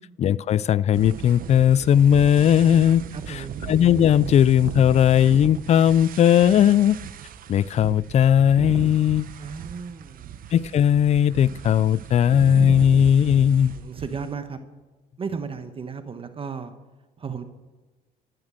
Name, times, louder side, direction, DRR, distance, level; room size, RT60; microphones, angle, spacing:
voice 1, 0.2-3.0 3.3-3.4 3.7-7.0 7.5-9.3 10.5-13.8, left 9 dB, 40° left, 22 dB, 0.4 m, -18 dB
sound 1, 0.9-14.3, right 9 dB, 55° right, 0.9 m, -36 dB
voice 2, 3.1-3.7 9.4-10.4 13.7-14.6 15.2-16.7 17.2-17.4, right 5 dB, 35° right, 10 dB, 1.1 m, -34 dB
14.0 x 11.0 x 7.5 m, 1.2 s
cardioid pair, 110°, 17 cm